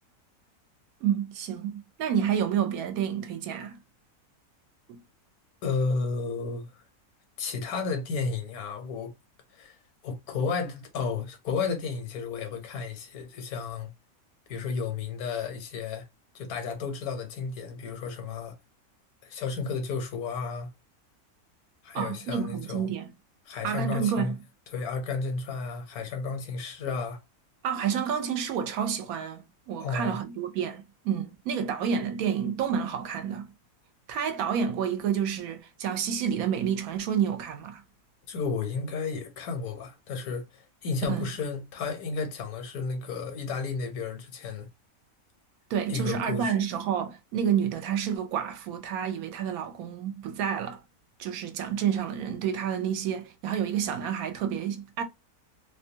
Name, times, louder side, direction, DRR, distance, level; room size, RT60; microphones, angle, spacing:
voice 1, 1.0-3.8 4.9-5.0 21.9-23.1 23.6-24.4 27.6-33.5 34.1-37.8 41.1-41.3 45.7-50.8 51.2-55.0, right 8 dB, 75° right, 1.0 m, -29 dB
voice 2, 5.6-6.8 7.4-9.1 9.5-9.8 10.0-13.9 14.5-16.1 16.3-18.5 19.2-20.7 21.8-22.9 23.5-24.3 24.7-27.2 29.8-30.2 38.3-44.7 45.9-46.5, left 4 dB, 75° left, 1.2 m, -32 dB
2.7 x 2.2 x 2.7 m
omnidirectional pair, 1.6 m